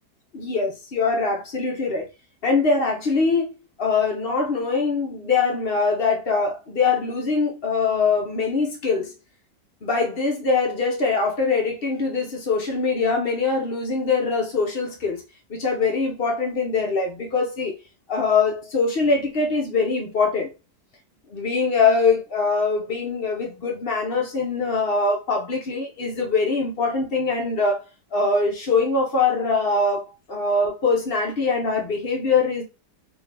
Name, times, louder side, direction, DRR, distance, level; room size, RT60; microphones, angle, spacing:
voice 1, 0.3-2.1 2.4-3.5 3.8-9.1 9.8-15.2 15.5-17.8 18.1-20.5 21.3-27.8 28.1-30.0 30.3-32.6, left 4 dB, 55° left, 0.6 m, -23 dB
3.6 x 2.6 x 3.2 m
omnidirectional pair, 1.9 m